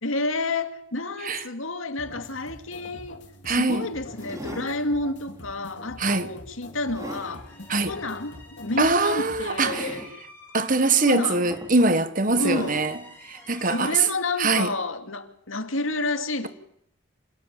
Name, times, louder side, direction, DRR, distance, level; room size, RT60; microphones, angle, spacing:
voice 1, 0.0-7.5 7.8-10.1 11.0-11.5 12.4-12.8 13.6-16.5, left 2 dB, 85° left, 2.4 m, -30 dB
sound 1, 2.0-9.8, left 1 dB, 60° left, 4.1 m, -45 dB
sound 2, 2.9-3.1 4.1-4.7 5.4-5.6 6.2-7.4 8.7-8.8 9.6-10.1 11.0-11.1 11.5-11.9 12.3-12.9 13.7-13.8, right 1 dB, 15° right, 2.7 m, -38 dB
voice 2, 3.4-3.9 6.0-6.3 7.7-7.9 8.8-10.0 10.5-13.0 13.3-14.1 14.4-14.7, right 3 dB, 40° right, 1.4 m, -23 dB
sound 3, 6.9-13.9, left 2 dB, 10° left, 6.4 m, -50 dB
26.5 x 18.0 x 9.0 m
head